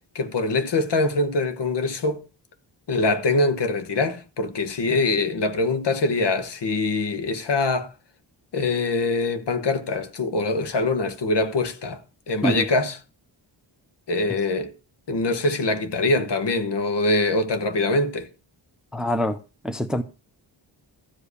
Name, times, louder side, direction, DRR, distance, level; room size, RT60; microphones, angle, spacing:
voice 1, 0.1-2.2 2.9-7.9 8.5-12.0 12.3-12.9 14.1-14.7 15.1-18.3, left 2 dB, 65° left, 1.6 m, -23 dB
voice 2, 18.9-19.4 19.6-20.0, equal, ahead, 0.6 m, -24 dB
14.5 x 5.2 x 8.3 m
wide cardioid pair, 145°, 45 cm